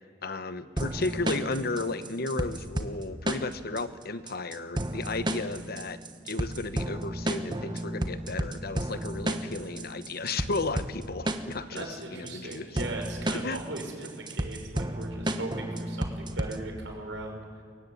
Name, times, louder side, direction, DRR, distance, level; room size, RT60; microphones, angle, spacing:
voice 1, 0.2-6.0 6.3-11.9 12.1-12.7 13.3-13.6, left 3 dB, 55° left, 12 dB, 1.0 m, -34 dB
sound 1, 0.8-16.8, right 1 dB, 25° right, 1.4 m, -33 dB
voice 2, 11.7-17.4, right 2 dB, 75° right, 2 dB, 6.2 m, -38 dB
23.5 x 21.5 x 9.7 m, 2.2 s
head